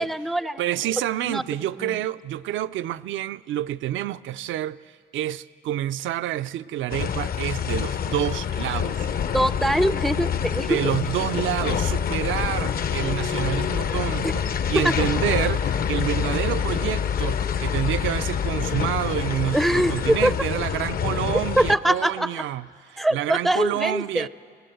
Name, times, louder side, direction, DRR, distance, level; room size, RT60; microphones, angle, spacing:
voice 1, 0.0-0.6 1.3-1.4 1.8-2.0 9.3-10.8 14.2-14.3 19.5-20.3 21.6-22.3 23.0-24.3, right 1 dB, ahead, 0.4 m, -23 dB
voice 2, 0.6-4.8 5.1-9.1 10.7-14.4 14.7-24.3, right 12 dB, 75° right, 0.5 m, -28 dB
sound 1, 6.9-21.8, left 8 dB, 50° left, 0.6 m, -26 dB
19.5 x 18.5 x 7.8 m
cardioid pair, 90°, 20 cm